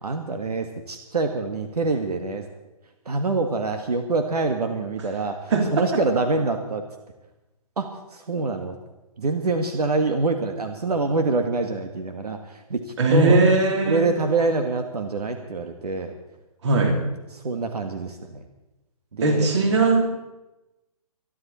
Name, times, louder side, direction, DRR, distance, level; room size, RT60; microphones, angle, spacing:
voice 1, 0.0-2.5 3.0-5.4 5.7-6.8 7.8-8.8 9.2-12.4 12.7-12.8 13.1-13.4 13.9-16.1 16.7-17.0 17.3-18.4 19.1-19.5, right 3 dB, 90° right, 6 dB, 1.8 m, -25 dB
voice 2, 13.0-14.1 16.6-17.0 19.2-20.0, right 3 dB, 45° right, 3 dB, 3.8 m, -19 dB
24.5 x 11.0 x 4.3 m, 1.0 s
hypercardioid pair, 160°, 19 cm